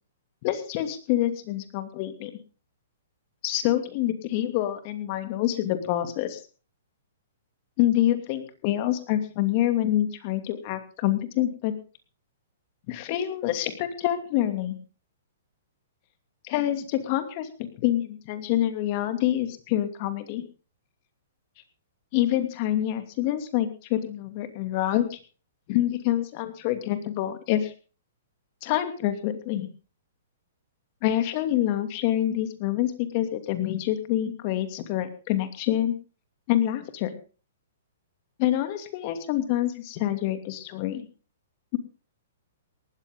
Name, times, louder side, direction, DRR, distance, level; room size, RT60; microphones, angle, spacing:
voice 1, 0.4-2.3 3.4-6.4 7.8-11.7 12.9-14.7 16.4-17.5 17.8-20.4 22.1-25.2 25.7-27.7 28.6-29.7 31.0-35.9 36.5-37.1 38.4-41.1, left 13 dB, 45° left, 8 dB, 2.6 m, -26 dB
18.5 x 13.5 x 3.8 m, 0.36 s
hypercardioid pair, 130°, 0 cm